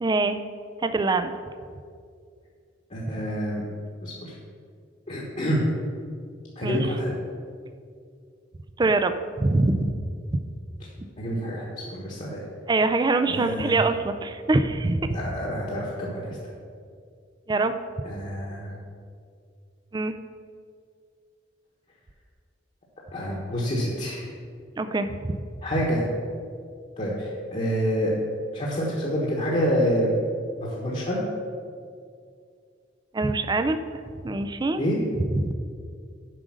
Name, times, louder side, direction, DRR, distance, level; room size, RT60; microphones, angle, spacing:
voice 1, 0.0-0.4 0.8-1.3 6.6-6.9 8.8-9.9 12.7-15.2 17.5-17.7 19.9-20.1 24.8-25.3 33.1-34.8 35.3-35.5, right 3 dB, 20° right, 9 dB, 0.4 m, -24 dB
voice 2, 2.9-3.6 4.0-4.3 5.1-5.6 6.6-7.2 11.2-12.4 13.3-13.8 15.1-16.5 18.0-18.7 23.1-24.3 25.6-26.0 27.0-28.1 28.5-30.1 30.6-31.2 34.8-35.0, equal, 40° left, -4 dB, 1.2 m, -27 dB
7.6 x 5.0 x 6.2 m, 2.2 s
head